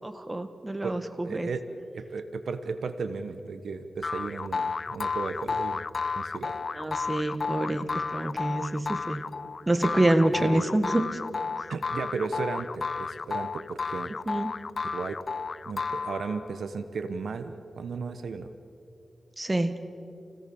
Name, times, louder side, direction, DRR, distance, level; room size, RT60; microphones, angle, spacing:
voice 1, 0.0-1.5 6.7-9.2 9.7-11.2 14.2-14.5 19.4-19.7, right 1 dB, 20° right, 9 dB, 1.7 m, -27 dB
voice 2, 0.8-1.6 1.9-5.9 6.1-6.6 10.3-10.8 11.7-14.2 14.9-15.1 15.7-18.5, right 4 dB, 80° right, 10 dB, 1.1 m, -35 dB
sound 1, 4.0-16.6, left 4 dB, 55° left, 0.4 m, -32 dB
29.0 x 17.0 x 7.1 m, 2.6 s
cardioid pair, 60°, 0 cm